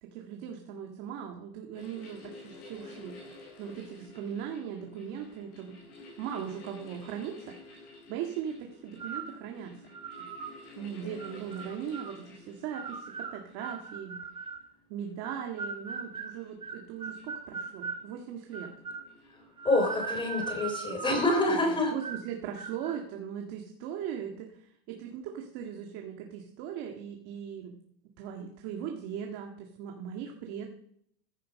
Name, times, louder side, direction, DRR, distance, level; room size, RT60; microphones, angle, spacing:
voice 1, 0.0-3.2 3.6-5.8 6.2-9.7 10.2-10.3 10.8-14.2 14.9-18.7 21.6-27.7 28.2-30.7, right 8 dB, 45° right, 2 dB, 1.9 m, -39 dB
sound 1, 1.8-21.6, left 2 dB, 50° left, 7.2 m, -52 dB
sound 2, 9.0-9.4 9.9-10.6 11.2-12.2 12.7-14.7 15.2-18.0 18.5-19.1 19.6-21.5 22.0-22.3 22.5-23.0, right 5 dB, 15° right, 1.1 m, -39 dB
voice 2, 19.3-21.9, left 2 dB, 15° left, 4 dB, 3.6 m, -27 dB
14.5 x 11.5 x 5.4 m, 0.70 s
supercardioid pair, 155°, 34 cm